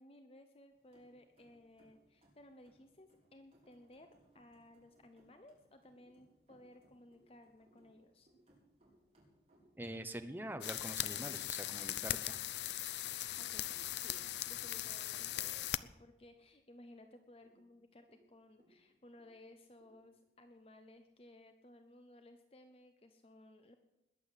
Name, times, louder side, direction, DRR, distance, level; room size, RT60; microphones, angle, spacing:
voice 1, 0.0-4.1 4.3-8.3 13.0-23.7, left 1 dB, 35° left, 7 dB, 0.8 m, -59 dB
sound 1, 0.7-14.1, right 1 dB, 35° right, 5.1 m, -72 dB
sound 2, 5.5-11.9 12.6-16.5 16.8-16.9 17.3-20.8, equal, 50° right, 6.8 m, -73 dB
voice 2, 9.8-12.4, right 1 dB, 10° right, 8 dB, 0.9 m, -45 dB
sound 3, 10.6-15.8, left 13 dB, 75° left, 0.5 m, -39 dB
20.5 x 7.7 x 8.4 m, 1.0 s
head